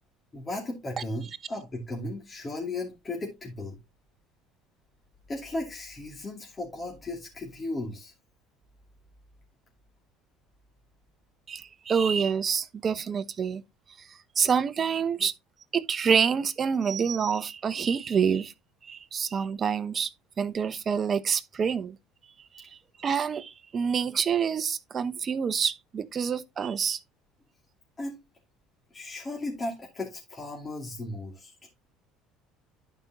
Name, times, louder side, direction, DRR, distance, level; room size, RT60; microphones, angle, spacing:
voice 1, 0.3-3.8 5.3-8.1 28.0-28.1 28.9-31.6, left 2 dB, 25° left, 2.6 m, -36 dB
voice 2, 11.5-13.6 14.0-15.3 15.7-18.5 18.8-22.0 22.5-27.0, right 6 dB, 35° right, 0.8 m, -27 dB
11.5 x 5.3 x 3.0 m
supercardioid pair, 100°, 0 cm